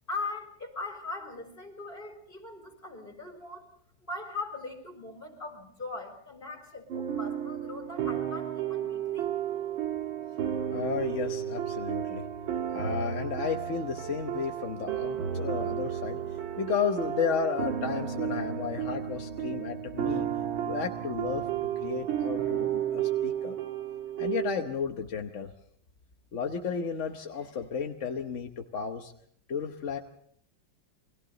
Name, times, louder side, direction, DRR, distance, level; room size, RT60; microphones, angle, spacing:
voice 1, 0.1-3.7 4.0-9.3, left 3 dB, 25° left, 4 dB, 4.5 m, -40 dB
sound 1, 6.9-24.6, right 10 dB, 90° right, 2.2 m, -32 dB
voice 2, 10.7-12.3 12.7-16.2 16.6-20.3 20.7-21.5 21.8-23.6 24.2-25.5 26.3-29.1 29.5-30.0, left 6 dB, 45° left, 4 dB, 1.1 m, -33 dB
29.0 x 23.5 x 3.9 m, 0.65 s
omnidirectional pair, 2.1 m